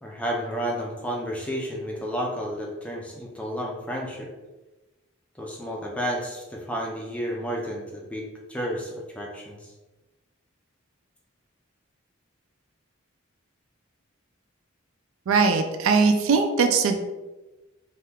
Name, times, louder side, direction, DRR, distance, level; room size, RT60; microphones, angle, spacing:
voice 1, 0.0-4.3 5.4-9.7, equal, 5° left, -1 dB, 0.4 m, -31 dB
voice 2, 15.3-17.0, right 4 dB, 75° right, 6 dB, 0.4 m, -20 dB
2.8 x 2.2 x 3.4 m, 1.1 s
head